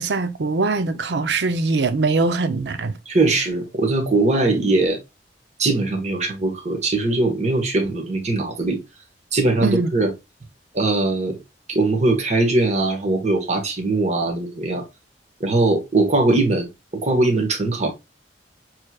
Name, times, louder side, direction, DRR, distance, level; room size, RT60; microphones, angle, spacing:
voice 1, 0.0-2.9 9.6-9.9, right 3 dB, 75° right, 0.6 m, -22 dB
voice 2, 3.0-5.0 5.6-8.8 9.3-10.1 10.7-11.4 11.7-14.8 15.4-17.9, right 2 dB, 40° right, 1.4 m, -20 dB
6.7 x 3.1 x 2.3 m
head